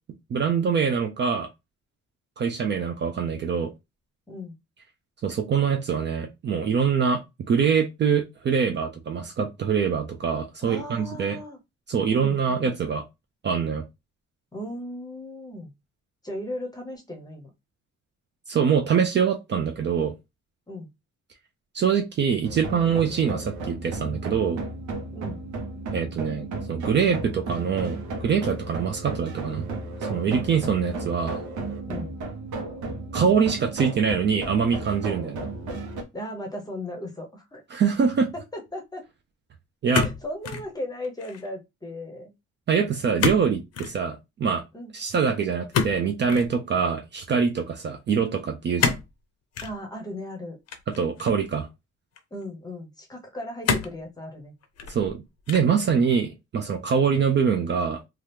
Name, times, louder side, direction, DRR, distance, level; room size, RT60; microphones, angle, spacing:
voice 1, 0.3-1.5 2.4-3.7 5.2-7.2 7.5-11.4 11.9-13.0 13.4-13.8 18.5-20.1 21.7-24.6 25.9-29.7 30.1-31.4 33.1-35.4 37.7-38.3 39.8-40.1 42.7-44.6 44.9-49.0 51.0-51.7 54.9-55.2 55.5-58.0, right 6 dB, 40° right, 0.4 m, -24 dB
voice 2, 4.3-4.6 10.6-11.6 12.1-12.7 14.5-15.7 16.2-17.5 20.7-20.9 25.1-25.4 31.8-32.1 36.1-37.6 38.3-39.0 40.0-42.3 44.7-44.9 49.6-50.6 52.3-54.5, left 1 dB, 15° left, 0.7 m, -36 dB
sound 1, 22.4-36.0, right 3 dB, 85° right, 0.9 m, -34 dB
sound 2, 39.9-40.7 41.0-41.5 43.2-43.5 43.7-44.0 45.7-46.5 48.8-49.1 49.5-49.8 50.7-51.5 52.2-52.3 53.6-54.0 54.6-55.1 55.5-55.8, left 6 dB, 60° left, 0.6 m, -27 dB
2.8 x 2.4 x 3.3 m
cardioid pair, 145°, 29 cm